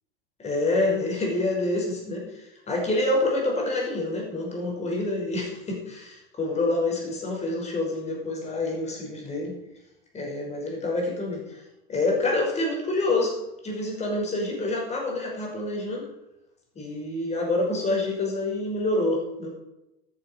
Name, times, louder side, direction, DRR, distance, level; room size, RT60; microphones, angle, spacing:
voice 1, 0.4-9.6 10.1-11.6 11.9-13.4 13.6-16.1 16.8-19.5, left 2 dB, 20° left, 0 dB, 5.8 m, -27 dB
14.0 x 10.5 x 6.6 m, 0.92 s
figure-of-eight pair, 85°, 30 cm